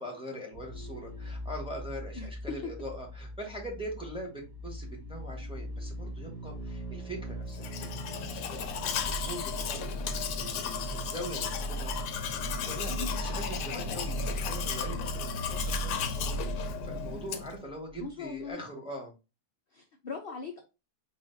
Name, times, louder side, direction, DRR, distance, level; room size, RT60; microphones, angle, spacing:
voice 1, 0.0-11.9 12.6-19.1, equal, 5° right, 0 dB, 1.0 m, -42 dB
sound 1, 0.5-18.1 18.3-18.4, right 1 dB, 40° right, 0.5 m, -39 dB
Domestic sounds home sounds, 7.5-17.6, left 8 dB, 75° left, 1.1 m, -35 dB
voice 2, 18.0-18.6 19.7-20.6, left 4 dB, 55° left, 2 dB, 0.6 m, -39 dB
4.3 x 2.5 x 3.8 m, 0.28 s
omnidirectional pair, 1.7 m